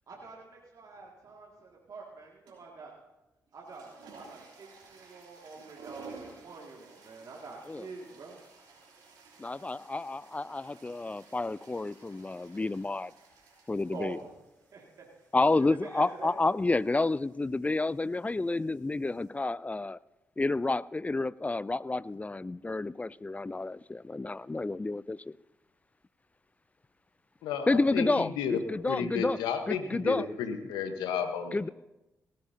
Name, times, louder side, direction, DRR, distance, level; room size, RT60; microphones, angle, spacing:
voice 1, 0.1-2.9 3.5-8.4 9.4-9.5 13.9-14.3 14.7-15.1 15.5-16.3, right 4 dB, 55° right, -3 dB, 2.2 m, -46 dB
sound 1, 2.5-2.8 3.5-19.3, right 4 dB, 75° right, 3.2 m, -54 dB
voice 2, 9.4-13.1 13.7-14.2 15.3-20.0 20.4-25.3 27.7-29.4 29.7-30.3 31.5-31.7, left 2 dB, 20° left, 21 dB, 0.4 m, -30 dB
voice 3, 27.4-28.6 28.9-31.7, left 7 dB, 80° left, 7 dB, 1.1 m, -33 dB
18.5 x 15.0 x 2.8 m, 0.97 s
hypercardioid pair, 40°, 7 cm